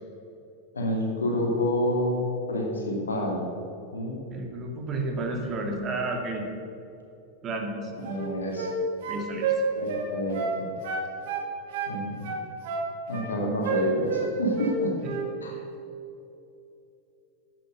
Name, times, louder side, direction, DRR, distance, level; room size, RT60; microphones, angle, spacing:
voice 1, 0.7-3.5 3.9-4.2 8.0-8.7 9.7-10.7 11.9-12.3 13.1-14.9 15.4-15.6, left 1 dB, 70° left, 0 dB, 2.6 m, -28 dB
voice 2, 4.3-6.4 7.4-7.9 9.1-9.5, right 2 dB, 30° right, 2 dB, 2.1 m, -31 dB
sound 1, 8.0-8.8 9.0-10.6 10.8-12.0 12.2-13.3 13.6-14.8 15.0-15.3, right 4 dB, 55° right, 2.0 m, -30 dB
10.5 x 9.0 x 6.8 m, 2.8 s
figure-of-eight pair, 90°, 0 cm